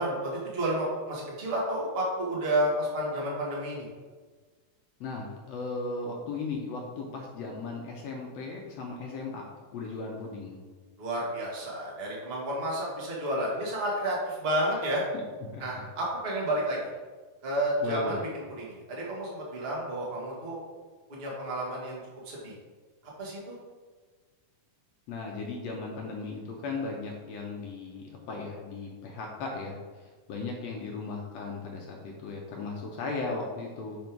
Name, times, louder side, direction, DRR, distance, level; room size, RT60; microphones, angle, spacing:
voice 1, 0.0-3.9 11.0-15.0 15.6-16.9 17.4-18.3 18.6-20.6 21.1-22.0 22.2-22.5 23.2-23.5, right 1 dB, 35° right, -4 dB, 0.9 m, -31 dB
voice 2, 5.0-9.5 9.7-10.6 15.5-15.8 17.8-18.2 25.1-29.8 30.3-34.0, left 3 dB, 70° left, -1 dB, 1.7 m, -36 dB
5.4 x 5.2 x 4.5 m, 1.4 s
omnidirectional pair, 3.6 m